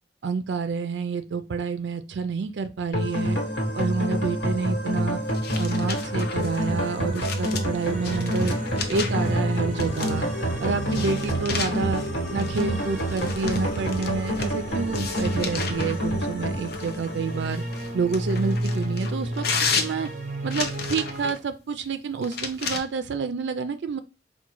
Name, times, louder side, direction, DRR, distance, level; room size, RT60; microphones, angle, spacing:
voice 1, 0.2-3.4 3.8-5.2 5.6-8.6 8.9-10.3 10.6-12.0 12.3-17.6 17.9-19.4 19.8-20.1 20.4-24.0, right 5 dB, 70° right, 9 dB, 0.4 m, -28 dB
sound 1, 2.9-18.0, equal, 90° left, 1.2 m, -28 dB
sound 2, 5.3-9.3 9.8-10.4 10.9-14.6 14.9-16.0 16.7-21.4 22.2-22.8, left 5 dB, 60° left, 0.6 m, -33 dB
sound 3, 7.5-21.3, right 1 dB, 45° right, 0.7 m, -33 dB
4.6 x 2.3 x 3.0 m, 0.29 s
head